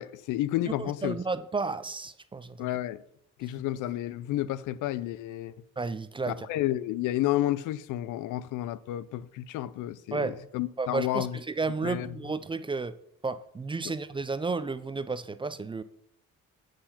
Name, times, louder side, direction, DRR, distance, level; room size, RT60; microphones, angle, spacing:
voice 1, 0.0-1.2 2.6-3.0 3.4-5.5 6.3-11.4 11.8-12.1 13.9-14.0, left 14 dB, 85° left, 0.5 m, -31 dB
voice 2, 0.8-2.7 5.8-6.5 10.1-10.4 10.8-13.0 13.2-15.8, right 4 dB, 15° right, 0.4 m, -32 dB
7.8 x 4.3 x 5.7 m
cardioid pair, 90°, 30 cm